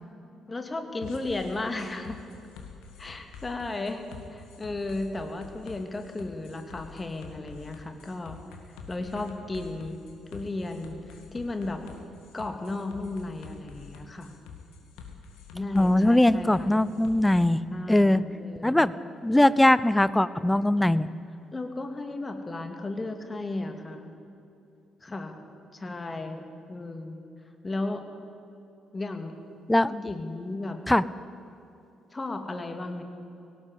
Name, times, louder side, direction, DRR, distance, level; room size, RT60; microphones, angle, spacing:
voice 1, 0.5-2.2 3.0-8.4 8.9-10.0 10.3-11.8 12.3-14.4 15.5-16.7 17.7-18.9 21.5-24.1 25.0-25.4 25.7-27.2 27.6-28.0 28.9-29.3 29.9-30.8 32.1-33.0, left 2 dB, 25° left, 6 dB, 2.5 m, -34 dB
sound 1, 1.0-17.4, left 6 dB, 65° left, 2.2 m, -47 dB
voice 2, 15.7-17.6 17.9-18.2 18.6-18.9 19.2-21.1 29.7-29.9 30.9-31.0, left 1 dB, 10° left, 17 dB, 0.7 m, -21 dB
18.0 x 18.0 x 8.2 m, 2.8 s
figure-of-eight pair, 45°, 0 cm